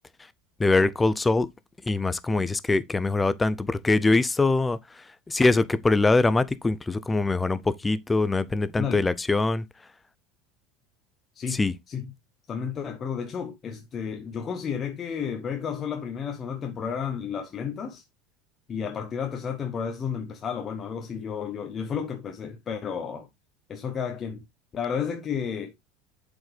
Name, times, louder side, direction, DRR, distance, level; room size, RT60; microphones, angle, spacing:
voice 1, 0.6-1.5 1.9-4.8 5.3-9.6 11.5-11.7, left 3 dB, 15° left, 0.5 m, -23 dB
voice 2, 12.5-18.0 18.7-23.3 23.7-24.4 24.7-25.7, left 7 dB, 35° left, 0.8 m, -32 dB
7.2 x 5.1 x 3.3 m
supercardioid pair, 105°, 0 cm